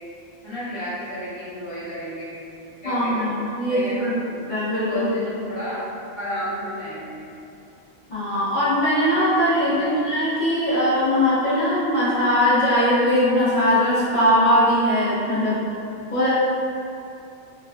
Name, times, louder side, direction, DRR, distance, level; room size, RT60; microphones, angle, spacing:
voice 1, 0.4-2.3 2.8-3.4 3.7-4.1 4.9-5.8 6.2-7.2 9.6-10.0, equal, 45° left, -13 dB, 1.4 m, -32 dB
voice 2, 2.8-4.1 4.5-5.0 8.1-15.6 16.1-16.3, equal, 25° left, -13 dB, 0.9 m, -20 dB
3.3 x 2.2 x 2.5 m, 2.7 s
omnidirectional pair, 1.4 m